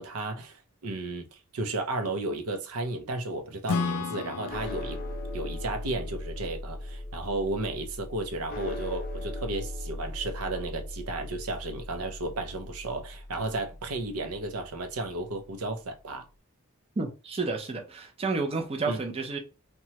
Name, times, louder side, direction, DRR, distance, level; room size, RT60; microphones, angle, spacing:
voice 1, 0.0-5.0 5.3-16.3 18.9-19.0, right 2 dB, 90° right, 0.6 m, -33 dB
Acoustic guitar / Strum, 3.7-7.3, left 4 dB, 85° left, 0.4 m, -35 dB
sound 1, 4.5-14.9, left 1 dB, 45° left, 0.6 m, -39 dB
voice 2, 17.0-19.4, right 3 dB, 25° right, 0.5 m, -31 dB
2.9 x 2.2 x 2.8 m
head